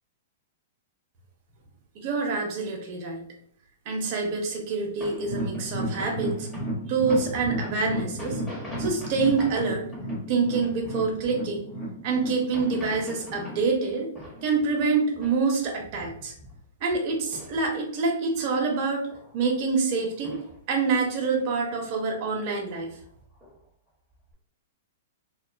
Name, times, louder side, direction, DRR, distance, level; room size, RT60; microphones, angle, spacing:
voice 1, 1.9-3.2 3.9-6.5 6.9-8.4 8.8-9.9 10.3-11.7 12.0-14.1 14.4-16.3 16.8-19.0 19.3-20.4 20.7-22.9, right 4 dB, 45° right, 1 dB, 0.7 m, -26 dB
sound 1, 5.0-11.6 12.3-14.8 15.1-18.0 18.3-18.4 18.7-19.6 20.0-20.6 20.9-21.7 22.2-22.4 22.7-23.6 24.2-24.3, left 1 dB, 5° left, 1.0 m, -43 dB
sound 2, 5.2-14.4 14.8-14.9 15.3-15.4, right 1 dB, 40° left, 0.9 m, -34 dB
2.4 x 2.2 x 2.4 m, 0.65 s
hypercardioid pair, 130°, 0 cm